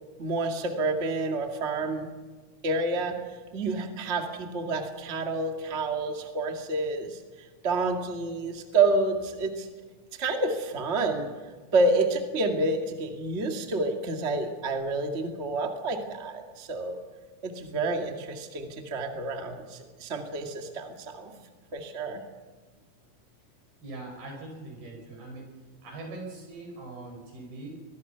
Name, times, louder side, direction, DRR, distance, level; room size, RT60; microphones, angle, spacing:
voice 1, 0.2-2.1 2.6-3.2 3.5-7.2 7.6-9.7 10.2-11.3 11.7-17.0 17.4-21.4 21.7-22.2, right 2 dB, 25° right, 3 dB, 1.6 m, -29 dB
voice 2, 23.8-25.5 25.8-27.7, right 2 dB, 80° right, 1 dB, 7.5 m, -41 dB
24.0 x 21.5 x 5.8 m, 1.4 s
omnidirectional pair, 4.4 m